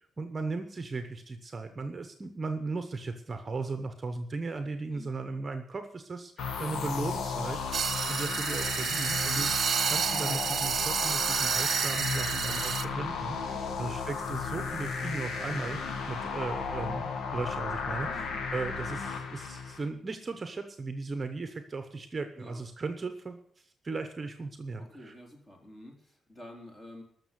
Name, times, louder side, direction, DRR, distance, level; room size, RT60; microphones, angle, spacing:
voice 1, 0.2-9.5 9.9-15.8 16.1-25.1, right 3 dB, 25° right, 7 dB, 1.0 m, -37 dB
sound 1, 6.4-19.9, left 5 dB, 90° left, 1.5 m, -34 dB
sound 2, 7.7-12.8, right 7 dB, 50° right, 0.7 m, -30 dB
voice 2, 18.0-18.5 22.4-22.6 24.8-27.0, left 1 dB, 20° left, 1 dB, 3.4 m, -49 dB
13.0 x 6.8 x 9.8 m, 0.63 s
wide cardioid pair, 160°, 0 cm